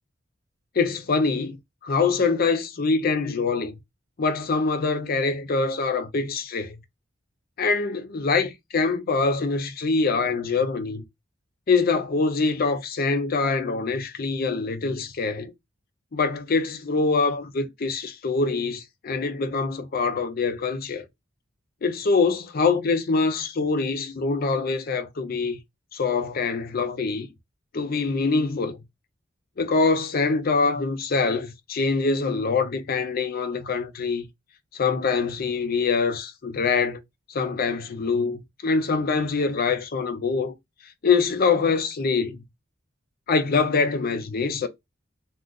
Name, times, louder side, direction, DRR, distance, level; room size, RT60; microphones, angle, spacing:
voice 1, 0.8-1.6 1.8-3.7 4.2-6.8 7.6-11.0 11.7-15.5 16.1-21.1 21.8-25.6 25.9-27.3 27.7-28.8 29.6-34.3 34.7-37.0 37.3-40.5 41.0-42.4 43.3-44.7, left 4 dB, 50° left, 0.5 m, -24 dB
2.4 x 2.3 x 3.5 m
head